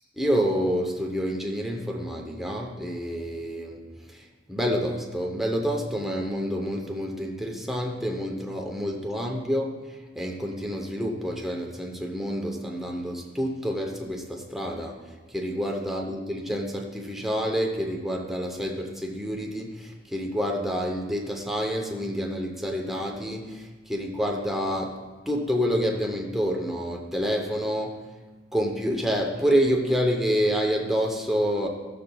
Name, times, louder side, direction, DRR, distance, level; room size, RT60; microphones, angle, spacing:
voice 1, 0.2-9.8 10.2-15.0 15.3-25.0 25.3-28.0 28.5-31.7, equal, ahead, 0 dB, 0.7 m, -28 dB
15.5 x 6.7 x 2.3 m, 1.3 s
head